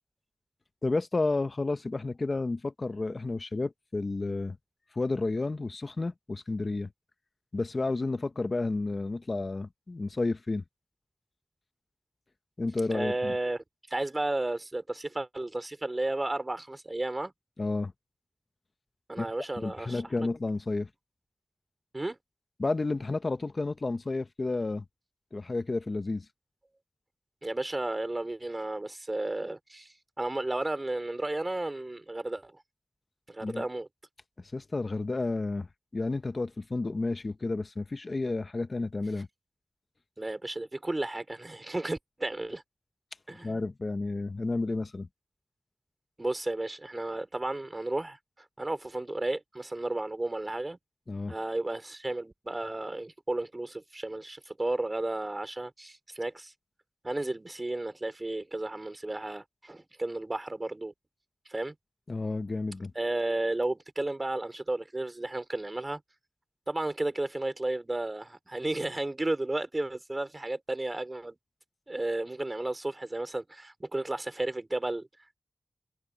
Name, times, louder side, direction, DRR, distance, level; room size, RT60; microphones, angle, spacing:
voice 1, 0.8-4.6 4.9-6.9 7.5-10.6 12.6-13.4 17.6-17.9 19.2-19.3 19.6-20.9 22.6-24.8 25.3-26.3 33.4-33.6 34.4-35.7 35.9-39.3 43.4-45.1 51.1-51.3 62.1-62.9, left 3 dB, 50° left, 0.8 m, -31 dB
voice 2, 12.9-13.6 13.9-17.3 19.1-20.0 21.9-22.2 27.4-32.5 33.3-33.9 40.2-42.6 43.3-43.5 46.2-48.2 48.6-50.8 51.3-56.5 57.0-60.9 61.5-61.7 63.0-66.0 66.7-71.4 71.9-75.1, right 2 dB, 30° right, 4.0 m, -33 dB
wide cardioid pair, 70°, 0 cm